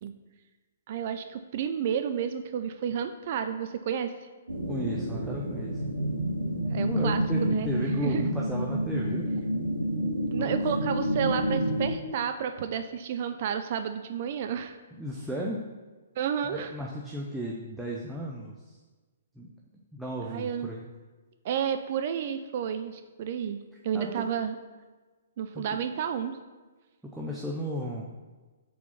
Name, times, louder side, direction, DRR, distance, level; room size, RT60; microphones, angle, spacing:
voice 1, 0.9-4.1 6.6-7.7 8.0-8.2 10.3-14.8 16.2-16.8 20.2-20.8 21.4-23.6 23.8-24.6 25.4-26.4, right 8 dB, 50° right, 8 dB, 0.4 m, -31 dB
sound 1, 4.5-11.9, equal, 90° right, 1.3 m, -29 dB
voice 2, 4.7-5.8 6.8-9.4 10.4-10.6 15.0-15.6 16.5-18.8 19.4-19.5 19.9-20.8 23.9-24.2 25.5-25.8 27.1-28.1, equal, 5° right, -4 dB, 0.7 m, -35 dB
4.6 x 4.1 x 5.6 m, 1.3 s
figure-of-eight pair, 125°, 0 cm